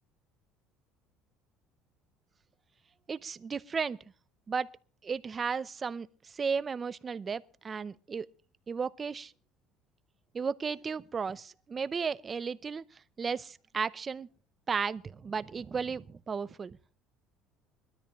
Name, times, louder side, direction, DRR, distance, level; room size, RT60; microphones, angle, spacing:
voice 1, 3.1-4.0 4.5-4.7 5.0-8.3 8.7-9.3 10.3-14.3 14.7-16.8, right 5 dB, 25° right, 0.6 m, -34 dB
22.0 x 13.0 x 3.1 m
cardioid pair, 135°, 0 cm